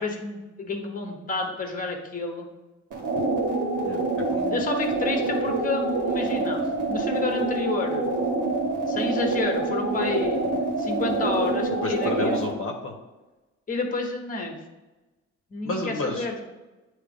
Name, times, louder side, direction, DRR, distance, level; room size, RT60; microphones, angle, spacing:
voice 1, 0.0-2.5 4.5-6.6 6.9-8.0 8.9-10.4 10.8-12.5 13.7-14.5 15.5-16.4, left 3 dB, 25° left, 2 dB, 1.2 m, -30 dB
sound 1, 2.9-12.5, right 2 dB, 85° right, 1.5 m, -26 dB
voice 2, 3.8-4.6 11.8-12.9 15.6-16.4, left 2 dB, 45° left, 0 dB, 1.1 m, -32 dB
8.9 x 3.0 x 3.5 m, 1.1 s
cardioid pair, 90°, 30 cm